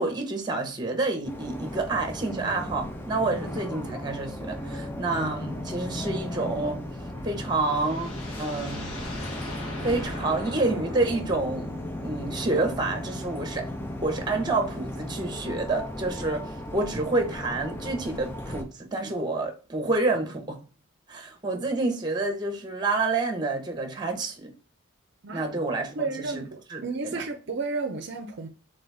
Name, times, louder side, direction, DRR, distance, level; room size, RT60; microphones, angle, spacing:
voice 1, 0.0-6.8 7.2-8.9 9.8-11.7 12.0-13.7 14.0-20.6 21.1-24.5 25.3-26.4 26.7-27.3, right 3 dB, 20° right, 0.9 m, -28 dB
sound 1, 1.3-18.6, left 1 dB, 10° left, 0.4 m, -36 dB
sound 2, 6.9-12.0, left 2 dB, 85° left, 1.4 m, -42 dB
voice 2, 25.9-28.5, right 3 dB, 55° right, 0.5 m, -32 dB
3.8 x 3.8 x 3.3 m
head